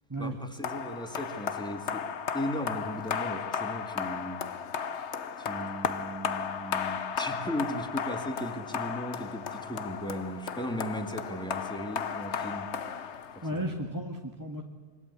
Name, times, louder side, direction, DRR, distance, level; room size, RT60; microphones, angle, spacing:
voice 1, 0.2-2.1 2.3-4.4 5.4-12.7 13.3-13.7, equal, 5° left, 4 dB, 2.3 m, -37 dB
sound 1, 0.6-13.7, left 7 dB, 55° left, 1.1 m, -35 dB
voice 2, 13.4-14.6, right 1 dB, 15° right, 2 dB, 1.5 m, -34 dB
26.0 x 22.5 x 8.4 m, 1.5 s
omnidirectional pair, 1.5 m